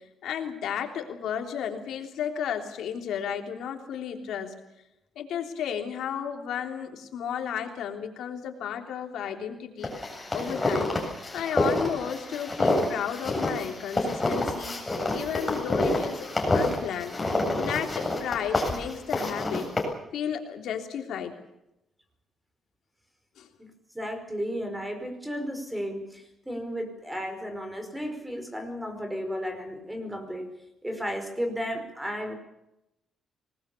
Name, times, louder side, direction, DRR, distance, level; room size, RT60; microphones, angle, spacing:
voice 1, 0.0-4.5 5.1-9.9 10.3-10.9 11.3-14.8 15.1-17.1 17.6-19.7 20.1-21.3 23.4-23.5, left 8 dB, 80° left, 4 dB, 3.4 m, -33 dB
sound 1, 9.8-19.8, left 2 dB, 15° left, 7.9 m, -28 dB
voice 2, 23.6-30.5 30.8-32.3, equal, 5° right, 7 dB, 5.0 m, -34 dB
26.0 x 20.0 x 7.1 m, 0.88 s
cardioid pair, 130°, 0 cm